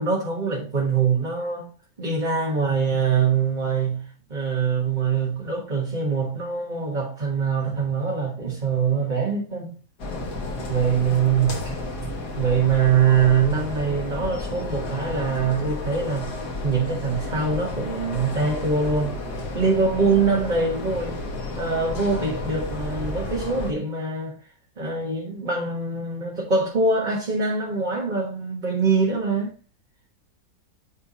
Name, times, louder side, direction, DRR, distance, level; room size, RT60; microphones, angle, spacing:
voice 1, 0.0-1.7 2.0-4.0 4.3-9.7 10.7-11.8 12.4-16.3 16.6-19.1 19.5-21.2 21.6-24.4 24.8-29.5, right 5 dB, 30° right, 1.6 m, -23 dB
sound 1, 10.0-23.7, left 2 dB, 85° left, 2.1 m, -32 dB
10.0 x 3.5 x 4.2 m
omnidirectional pair, 1.7 m